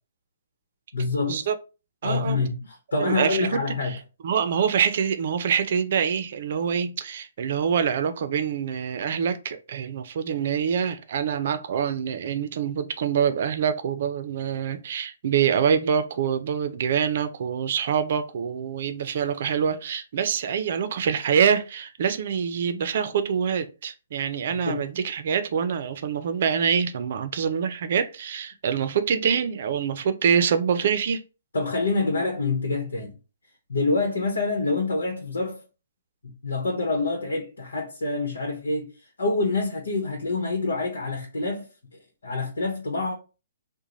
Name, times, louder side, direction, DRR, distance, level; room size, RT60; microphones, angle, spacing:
voice 1, 0.9-1.4 2.0-4.0 24.7-24.8 31.5-33.1 33.7-35.6 36.4-38.9 39.2-41.7 42.2-43.1, left 3 dB, 90° left, 0.9 m, -26 dB
voice 2, 2.0-2.4 3.0-3.6 4.2-31.2, right 7 dB, 55° right, 0.5 m, -25 dB
3.0 x 2.2 x 3.8 m
hypercardioid pair, 145°, 0 cm